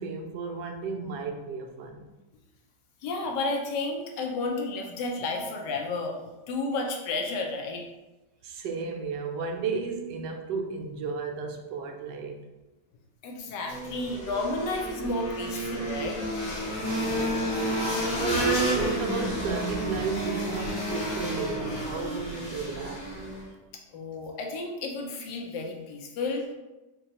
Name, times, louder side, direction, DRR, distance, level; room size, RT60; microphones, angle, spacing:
voice 1, 0.0-2.1 8.4-12.4 16.8-17.7 18.0-23.0, right 5 dB, 85° right, 3 dB, 1.2 m, -34 dB
voice 2, 3.0-6.2 6.5-7.8 13.2-16.2 23.9-26.5, left 3 dB, 85° left, 1 dB, 1.3 m, -32 dB
sound 1, 13.7-23.5, right 1 dB, 35° left, 0.8 m, -30 dB
3.8 x 2.3 x 4.0 m, 1.1 s
omnidirectional pair, 1.8 m